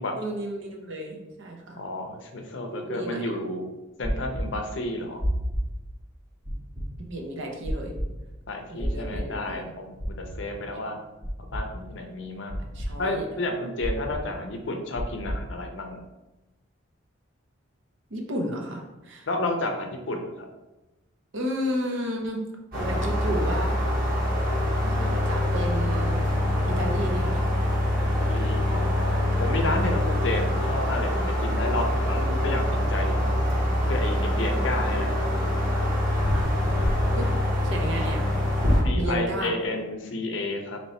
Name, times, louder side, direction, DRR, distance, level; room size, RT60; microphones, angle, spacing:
voice 1, 0.2-1.8 2.7-3.3 7.0-7.9 8.7-9.7 10.9-11.0 12.7-13.3 18.1-19.3 21.3-22.4 22.7-23.8 24.8-26.2 26.7-27.5 32.1-32.6 37.1-37.3 37.6-38.2 38.9-39.5, right 1 dB, 65° right, 1 dB, 0.7 m, -32 dB
voice 2, 1.8-3.7 4.0-5.2 8.5-9.9 10.2-11.0 11.4-12.5 13.0-16.0 19.3-20.5 28.2-33.4 33.9-35.1 38.8-40.8, left 2 dB, 65° left, 4 dB, 0.6 m, -31 dB
sound 1, 4.0-4.4 5.2-5.6 6.4-6.8 7.6-8.0 8.8-9.2 10.0-10.4 11.2-11.6 12.5-12.9 13.8-14.2 15.0-15.4, equal, 25° right, 0.8 m, -29 dB
sound 2, 22.7-38.8, left 1 dB, 45° right, 1.1 m, -24 dB
3.0 x 3.0 x 4.2 m, 1.0 s
head